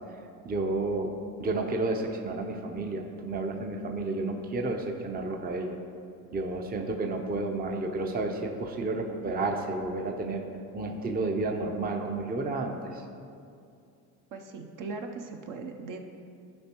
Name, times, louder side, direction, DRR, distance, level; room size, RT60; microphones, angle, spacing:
voice 1, 0.4-5.8 6.3-10.4 10.7-13.0, right 2 dB, 20° right, 3 dB, 0.7 m, -31 dB
voice 2, 14.3-16.1, right 3 dB, 45° right, 4 dB, 0.9 m, -39 dB
12.0 x 5.2 x 3.0 m, 2.4 s
hypercardioid pair, 75°, 43 cm